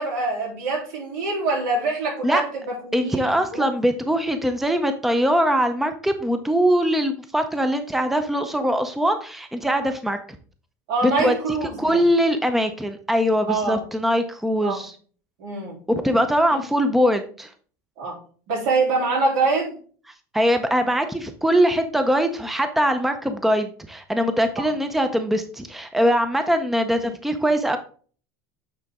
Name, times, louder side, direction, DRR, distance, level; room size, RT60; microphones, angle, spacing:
voice 1, 0.0-3.7 10.9-12.0 13.5-13.8 14.6-14.8 15.4-15.8 18.0-18.2 18.5-19.7 24.6-24.7, right 3 dB, 80° right, -2 dB, 3.4 m, -25 dB
voice 2, 2.9-10.2 11.0-11.3 11.8-14.9 15.9-17.5 20.3-27.8, equal, ahead, 8 dB, 0.6 m, -22 dB
8.7 x 3.8 x 3.6 m, 0.43 s
supercardioid pair, 125°, 9 cm